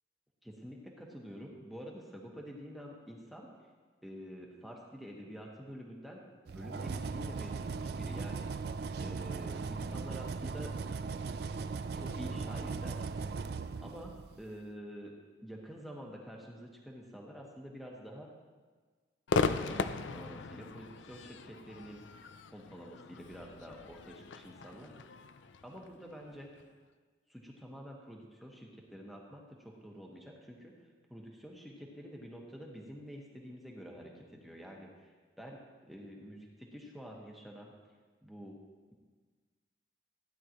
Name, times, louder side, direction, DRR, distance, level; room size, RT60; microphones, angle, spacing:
voice 1, 0.4-3.5 4.0-7.5 8.0-8.6 9.0-10.7 11.9-13.0 13.8-18.3 19.3-22.0 22.5-25.1 25.6-26.5 27.3-35.1 35.4-37.7 38.2-38.6, equal, ahead, -2 dB, 1.4 m, -48 dB
sound 1, 6.5-14.4, right 4 dB, 55° right, 0.4 m, -38 dB
Crowd / Fireworks, 19.3-26.6, left 4 dB, 80° left, 0.5 m, -37 dB
15.5 x 10.0 x 3.0 m, 1.4 s
head